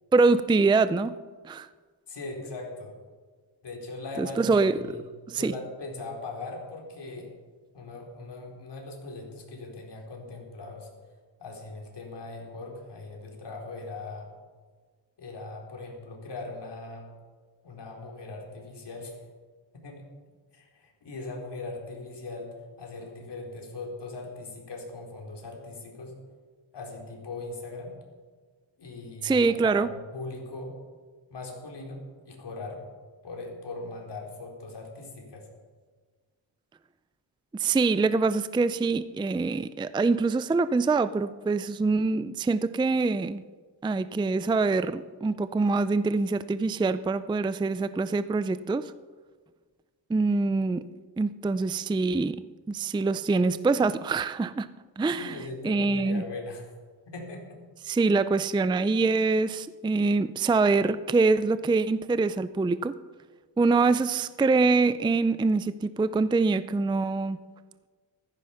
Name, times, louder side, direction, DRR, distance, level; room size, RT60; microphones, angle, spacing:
voice 1, 0.1-1.2 1.4-1.7 4.2-4.7 5.3-5.5 29.2-29.9 37.5-43.4 43.8-48.9 50.1-50.8 51.2-54.7 55.0-55.4 55.6-56.2 57.9-63.0 63.6-67.4, right 3 dB, 10° right, 14 dB, 0.4 m, -24 dB
voice 2, 2.1-3.0 3.6-5.0 5.3-7.3 7.7-10.9 11.4-14.3 15.2-17.1 17.6-19.2 19.7-20.0 20.5-26.1 26.7-27.9 28.8-30.7 31.3-32.8 33.2-35.5 55.1-56.7 57.1-57.4, left 2 dB, 60° left, 0 dB, 4.3 m, -40 dB
15.0 x 13.5 x 5.8 m, 1.5 s
cardioid pair, 100°, 47 cm